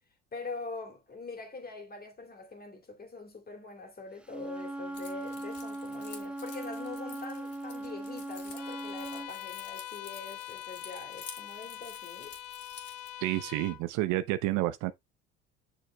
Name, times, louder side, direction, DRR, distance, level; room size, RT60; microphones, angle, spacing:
voice 1, 0.3-12.4, left 3 dB, 25° left, 2.5 m, -44 dB
Wind instrument woodwind instrument, 4.2-9.3, right 1 dB, 5° right, 0.7 m, -39 dB
Keys jangling, 4.9-13.1, left 5 dB, 45° left, 2.3 m, -50 dB
Bowed string instrument, 8.6-13.9, left 13 dB, 60° left, 0.8 m, -43 dB
voice 2, 13.2-14.9, right 16 dB, 55° right, 0.7 m, -29 dB
7.9 x 6.4 x 2.2 m
hypercardioid pair, 70°, 35 cm